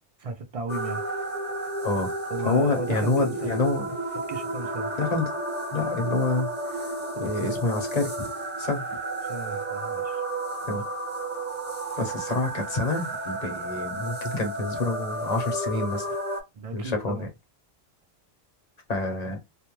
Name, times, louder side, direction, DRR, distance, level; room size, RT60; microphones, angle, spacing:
voice 1, 0.2-1.0 2.3-3.6 4.1-4.9 9.2-10.2 16.5-17.3, right 3 dB, 50° right, 0.4 m, -35 dB
sound 1, 0.7-16.4, right 2 dB, 10° right, 0.6 m, -32 dB
voice 2, 2.4-3.9 5.0-5.3 5.7-6.9 7.2-8.3 8.6-8.8 10.7-10.8 12.0-16.2 16.7-17.3 18.9-19.4, left 3 dB, 40° left, 0.8 m, -27 dB
2.5 x 2.1 x 3.0 m
omnidirectional pair, 1.2 m